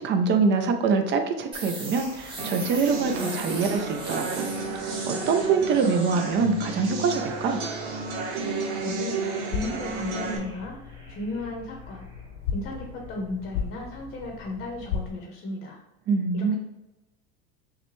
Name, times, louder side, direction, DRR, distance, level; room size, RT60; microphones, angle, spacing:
voice 1, 0.0-7.6 16.1-16.6, right 5 dB, 35° right, 6 dB, 0.5 m, -25 dB
sound 1, 1.5-13.2, right 1 dB, 15° right, 1.2 m, -42 dB
sound 2, 2.4-10.4, right 3 dB, 75° right, 0.9 m, -32 dB
voice 2, 8.8-10.8 11.1-12.0 12.5-15.8 16.3-16.6, left 2 dB, 30° left, 1 dB, 0.8 m, -35 dB
sound 3, 9.5-15.1, left 7 dB, 65° left, 0.6 m, -36 dB
5.6 x 2.2 x 3.1 m, 0.95 s
supercardioid pair, 125°, 32 cm